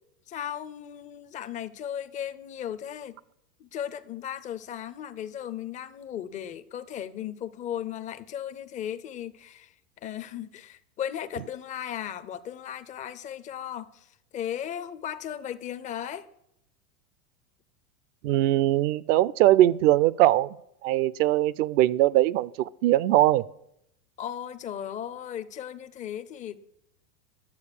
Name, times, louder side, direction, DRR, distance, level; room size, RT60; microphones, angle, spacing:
voice 1, 0.3-3.2 3.6-9.7 10.0-14.1 14.3-16.3 24.2-26.6, left 10 dB, 15° left, 12 dB, 0.4 m, -36 dB
voice 2, 18.2-20.6 20.8-23.4, right 15 dB, 55° right, 20 dB, 0.5 m, -21 dB
11.0 x 6.8 x 6.7 m, 0.79 s
hypercardioid pair, 105°, 48 cm